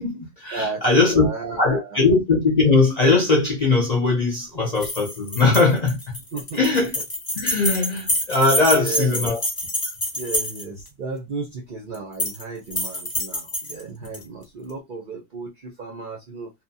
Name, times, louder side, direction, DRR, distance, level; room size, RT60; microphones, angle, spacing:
voice 1, 0.0-1.3 1.6-6.2 6.5-7.0 7.3-9.4 14.0-14.2, left 3 dB, 45° left, 0.5 m, -20 dB
voice 2, 0.5-2.0 6.3-6.6 8.7-9.3 10.1-16.5, right 4 dB, 55° right, 0.5 m, -33 dB
sound 1, 4.8-10.9 11.9-12.4 12.7-14.2, left 1 dB, 20° left, 0.8 m, -27 dB
2.7 x 2.1 x 2.6 m
omnidirectional pair, 1.4 m